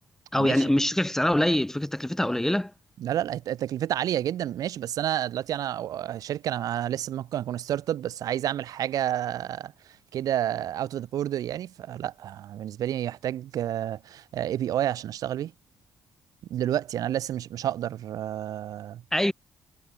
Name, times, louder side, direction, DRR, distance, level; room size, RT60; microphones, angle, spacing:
voice 1, 0.3-2.7 19.1-19.3, left 1 dB, 5° left, 0.8 m, -24 dB
voice 2, 3.0-9.7 10.1-15.5 16.5-19.0, right 11 dB, 75° right, 1.6 m, -30 dB
cardioid pair, 95°, 6 cm